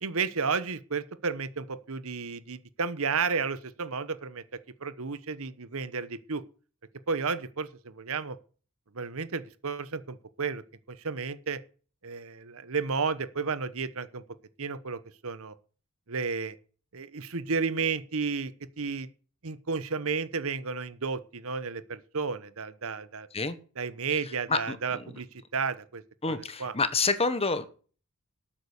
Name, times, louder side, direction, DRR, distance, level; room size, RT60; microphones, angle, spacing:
voice 1, 0.0-6.4 7.1-8.4 8.9-10.6 10.9-11.6 12.0-14.2 14.6-15.5 16.1-16.5 16.9-18.5 18.8-19.1 19.4-23.3 23.8-25.3 25.5-26.7, right 5 dB, 70° right, 14 dB, 1.1 m, -32 dB
voice 2, 24.5-25.0 26.2-27.7, left 4 dB, 25° left, 12 dB, 1.3 m, -28 dB
12.5 x 8.9 x 6.6 m, 0.40 s
head